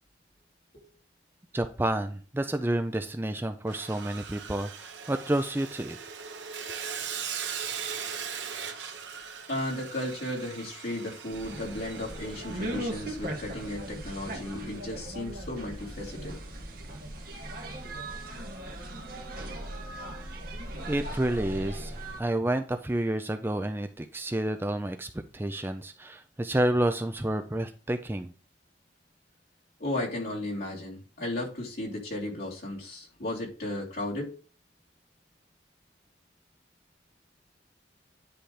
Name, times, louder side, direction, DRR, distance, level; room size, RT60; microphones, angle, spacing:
voice 1, 1.5-6.0 20.9-28.3, right 1 dB, 10° right, 7 dB, 0.4 m, -30 dB
Sawing, 3.7-13.9, right 7 dB, 80° right, 1.1 m, -40 dB
voice 2, 9.5-16.4 29.8-34.3, left 1 dB, 55° left, -4 dB, 3.1 m, -35 dB
sound 1, 11.3-22.2, right 1 dB, 50° right, 1.7 m, -38 dB
10.0 x 3.4 x 4.9 m, 0.38 s
head